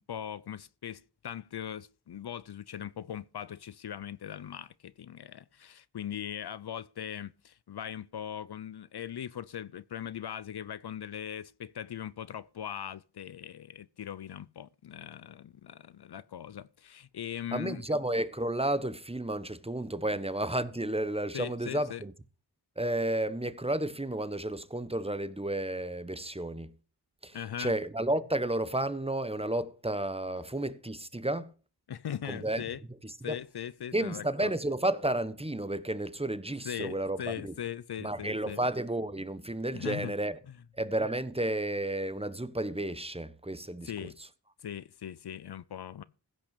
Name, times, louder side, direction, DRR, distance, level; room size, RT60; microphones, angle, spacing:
voice 1, 0.0-18.0 21.3-22.0 27.3-27.7 31.9-32.8 33.2-34.6 36.6-38.6 39.7-40.1 40.5-40.6 43.8-44.2 44.6-46.0, left 9 dB, 65° left, 0.6 m, -40 dB
voice 2, 17.5-22.1 22.8-26.7 27.2-31.5 32.3-32.6 33.3-33.4 33.9-37.5 38.0-40.4 40.8-44.1, right 1 dB, 15° right, 1.1 m, -32 dB
15.5 x 6.0 x 6.7 m
cardioid pair, 45°, 42 cm